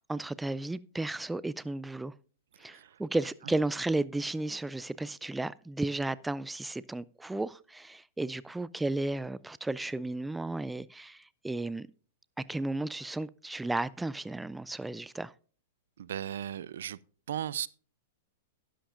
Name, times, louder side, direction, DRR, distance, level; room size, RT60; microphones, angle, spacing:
voice 1, 0.0-2.1 2.6-11.9 12.4-15.3, right 2 dB, 5° right, 0.4 m, -34 dB
voice 2, 2.7-3.0 16.0-17.0 17.3-17.7, right 10 dB, 75° right, 0.5 m, -36 dB
12.5 x 11.5 x 2.5 m
hypercardioid pair, 130°, 0 cm